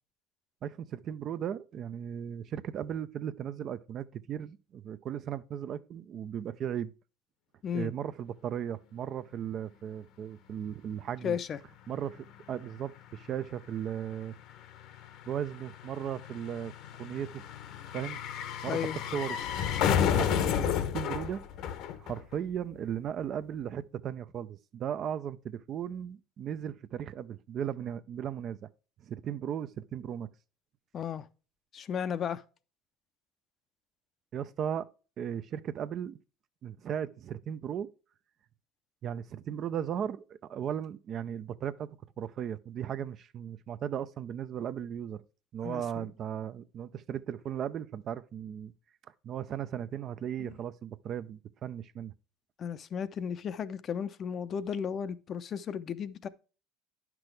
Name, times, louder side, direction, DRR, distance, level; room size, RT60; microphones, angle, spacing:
voice 1, 0.6-6.9 7.7-11.4 11.9-14.3 15.3-16.7 17.0-17.4 17.9-18.2 18.6-19.4 20.1-21.4 22.0-28.7 29.1-30.3 34.3-34.9 35.2-36.2 36.6-37.9 39.0-45.2 45.5-48.7 49.2-52.1, right 9 dB, 45° right, 0.5 m, -36 dB
voice 2, 11.2-11.6 18.7-19.0 30.9-31.3 31.7-32.4 45.6-46.1 50.4-50.6 52.6-56.3, left 7 dB, 40° left, 0.6 m, -34 dB
sound 1, 11.9-12.0 12.2-22.6 22.8-22.9, left 8 dB, 65° left, 0.9 m, -32 dB
9.6 x 6.0 x 3.3 m
supercardioid pair, 105°, 0 cm